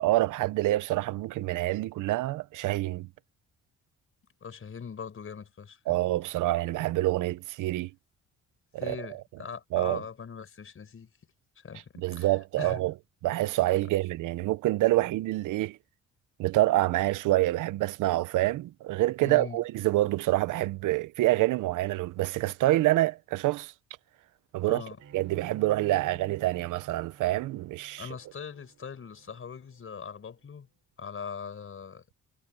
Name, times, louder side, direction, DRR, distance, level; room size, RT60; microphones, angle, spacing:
voice 1, 0.0-3.1 5.9-7.9 8.8-9.0 9.7-10.0 12.0-12.9 13.2-15.8 16.4-23.7 24.5-24.8 25.1-28.1, right 17 dB, 85° right, 0.8 m, -27 dB
voice 2, 4.4-6.0 8.8-11.1 11.6-12.8 19.2-19.6 24.6-25.0 28.0-30.7 31.0-32.0, left 6 dB, 45° left, 5.4 m, -41 dB
Bowed string instrument, 25.0-30.3, right 8 dB, 55° right, 7.6 m, -51 dB
cardioid pair, 90°, 30 cm